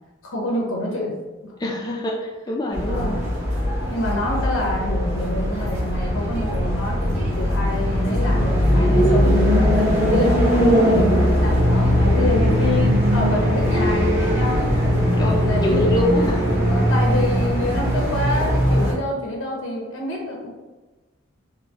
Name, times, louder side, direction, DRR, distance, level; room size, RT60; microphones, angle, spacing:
voice 1, 0.3-1.5 2.9-3.2 3.9-14.7 15.5-16.0 16.6-20.5, left 1 dB, 85° left, -1 dB, 0.8 m, -27 dB
voice 2, 1.6-3.2 8.7-9.3 15.2-16.9, left 1 dB, 20° left, -1 dB, 0.3 m, -26 dB
sound 1, 2.7-18.9, equal, 35° right, 1.4 m, -20 dB
sound 2, 11.4-17.4, equal, 60° right, 1.0 m, -24 dB
3.8 x 2.6 x 2.8 m, 1.2 s
head